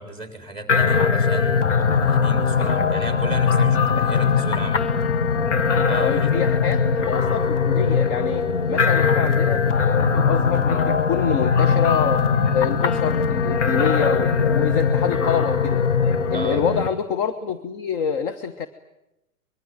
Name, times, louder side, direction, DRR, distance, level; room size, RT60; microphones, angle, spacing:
voice 1, 0.0-4.8 5.9-6.3 16.3-16.8, right 2 dB, 10° left, 6 dB, 4.1 m, -34 dB
sound 1, 0.7-16.9, left 5 dB, 50° left, 1.5 m, -20 dB
voice 2, 6.0-12.2 12.5-15.9 16.3-18.7, left 7 dB, 35° left, 9 dB, 1.3 m, -26 dB
25.0 x 22.0 x 9.1 m, 0.91 s
figure-of-eight pair, 110°, 45 cm